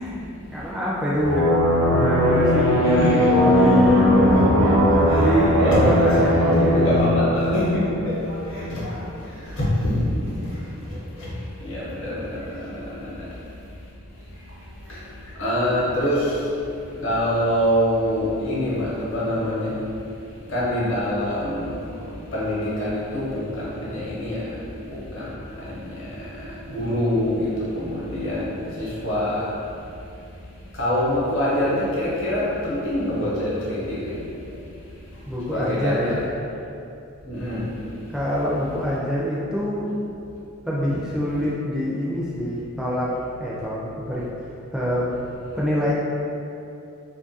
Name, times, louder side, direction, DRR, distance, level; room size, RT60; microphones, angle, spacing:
voice 1, 0.0-1.6 1.9-4.0 4.6-4.9 5.2-7.1 35.3-36.4 38.1-39.9 40.7-44.2 44.7-45.1 45.5-45.9, equal, ahead, -8 dB, 0.3 m, -25 dB
sound 1, 1.2-8.6, equal, 60° right, 0.6 m, -19 dB
voice 2, 2.8-5.3 5.6-11.3 11.6-13.3 14.9-15.0 15.4-16.5 16.9-19.9 20.3-24.5 24.8-29.5 30.7-34.3 35.5-36.1 37.2-37.7, left 1 dB, 60° left, -8 dB, 0.8 m, -25 dB
2.6 x 2.4 x 2.6 m, 2.7 s
head